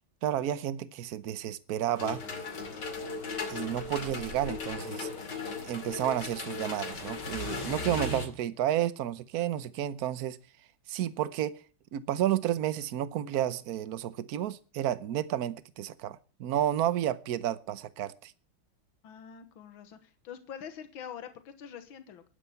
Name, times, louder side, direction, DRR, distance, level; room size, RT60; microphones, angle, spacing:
voice 1, 0.2-2.2 3.5-5.1 5.6-10.4 10.9-11.5 11.9-18.3, right 11 dB, 60° right, 1.2 m, -31 dB
sound 1, 2.0-8.3, left 4 dB, 60° left, 3.2 m, -37 dB
voice 2, 19.0-22.2, left 8 dB, 80° left, 2.0 m, -45 dB
11.5 x 10.0 x 7.0 m
omnidirectional pair, 2.1 m